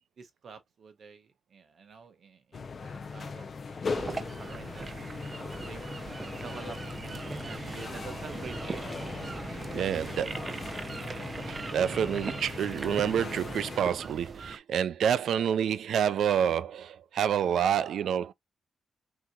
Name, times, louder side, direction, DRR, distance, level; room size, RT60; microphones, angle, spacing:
voice 1, 0.2-5.1 5.6-5.9 6.3-8.9 9.6-10.8, right 5 dB, 55° right, 1.1 m, -48 dB
sound 1, 2.5-13.8, left 5 dB, 40° left, 0.6 m, -39 dB
sound 2, 3.9-14.6, right 4 dB, 30° right, 0.5 m, -40 dB
voice 2, 9.7-10.3 11.5-18.3, right 8 dB, 85° right, 0.4 m, -28 dB
5.9 x 2.9 x 2.3 m
wide cardioid pair, 145°, 0 cm